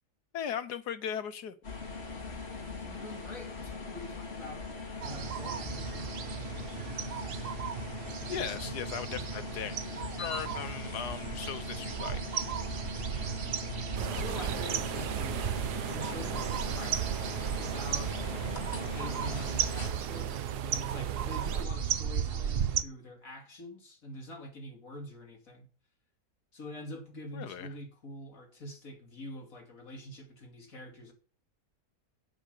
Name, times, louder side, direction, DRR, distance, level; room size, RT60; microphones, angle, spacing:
voice 1, 0.3-1.6 8.3-9.8 10.2-12.2 20.0-20.1 27.3-27.7, left 8 dB, 85° left, 1.5 m, -37 dB
sound 1, 1.6-19.9, left 4 dB, 40° left, 2.3 m, -41 dB
voice 2, 2.8-4.7 5.0-6.4 14.0-15.6 15.9-17.1 17.4-25.7 26.5-31.1, left 1 dB, 55° left, 2.8 m, -45 dB
sound 2, 5.0-22.8, right 8 dB, 55° right, 0.7 m, -35 dB
sound 3, 14.0-21.7, right 11 dB, 90° right, 1.2 m, -40 dB
8.1 x 8.1 x 6.6 m
omnidirectional pair, 1.7 m